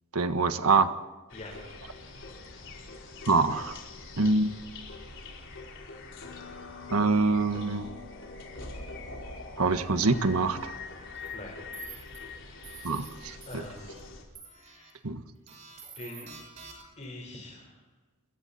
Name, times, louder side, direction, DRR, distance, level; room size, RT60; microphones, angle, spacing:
voice 1, 0.1-0.9 3.3-3.8 4.2-4.5 6.9-7.9 9.6-10.7 12.8-13.6 15.0-15.2, right 3 dB, 85° right, 1.5 m, -25 dB
sound 1, 1.3-14.2, left 3 dB, 60° left, 4.7 m, -43 dB
sound 2, 11.1-11.3 11.7-12.2 12.6-13.1 13.4-14.0 14.3-14.9 15.5-17.0, right 6 dB, 30° right, 5.9 m, -48 dB
voice 2, 11.3-11.7 13.5-14.0 14.4-15.0 15.9-16.3 17.0-17.8, left 1 dB, 35° left, 4.4 m, -44 dB
29.5 x 22.5 x 4.3 m
head